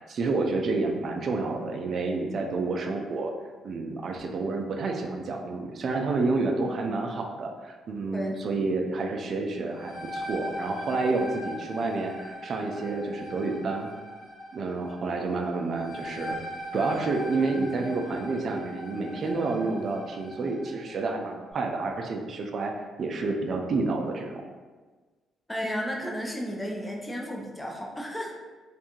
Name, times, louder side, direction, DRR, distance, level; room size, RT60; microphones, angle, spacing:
voice 1, 0.0-3.3 3.6-13.9 14.5-16.4 16.7-22.7 23.0-24.4, right 3 dB, 55° right, 3 dB, 0.3 m, -29 dB
sound 1, 9.5-21.0, left 1 dB, 70° left, 0.6 m, -40 dB
voice 2, 25.5-28.3, equal, 10° left, -1 dB, 0.5 m, -33 dB
2.5 x 2.2 x 2.9 m, 1.4 s
cardioid pair, 90°, 0 cm